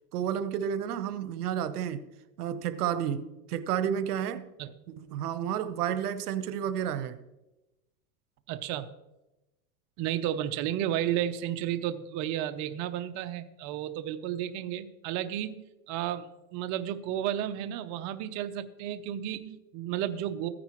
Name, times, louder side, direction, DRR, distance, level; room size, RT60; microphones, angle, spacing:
voice 1, 0.1-2.0 2.4-4.4 5.0-7.2, right 9 dB, 90° right, 1.0 m, -31 dB
voice 2, 8.5-8.9 10.0-20.5, right 11 dB, 40° right, 0.7 m, -32 dB
15.0 x 10.0 x 3.1 m
supercardioid pair, 135°, 45 cm